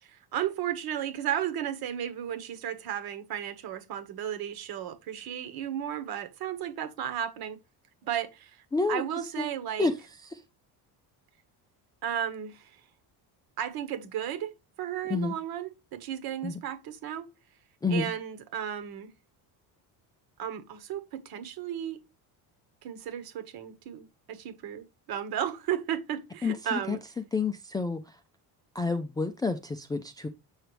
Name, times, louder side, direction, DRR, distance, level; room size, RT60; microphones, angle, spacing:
voice 1, 0.0-7.6 8.0-9.9 12.0-12.8 13.6-17.3 17.9-19.1 20.4-22.0 22.8-27.0, right 10 dB, 60° right, 1.6 m, -34 dB
voice 2, 8.7-9.0 9.4-9.5 9.8-9.9 10.3-10.4 15.1-15.3 16.4-16.6 17.8-18.1 26.4-27.0 27.3-28.2 28.7-30.3, left 4 dB, 10° left, 0.3 m, -29 dB
8.0 x 5.9 x 3.3 m
cardioid pair, 155°, 41 cm